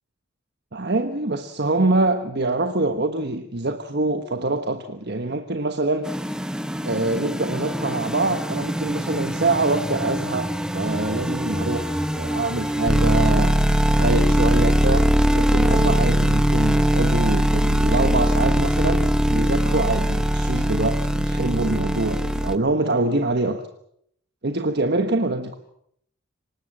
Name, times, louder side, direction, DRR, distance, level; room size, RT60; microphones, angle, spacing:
voice 1, 0.7-6.1 6.8-13.7 14.0-23.6 24.4-25.6, right 2 dB, 55° right, 1.3 m, -25 dB
sound 1, 6.0-22.6, equal, 5° right, 1.0 m, -21 dB
24.5 x 20.5 x 7.5 m
head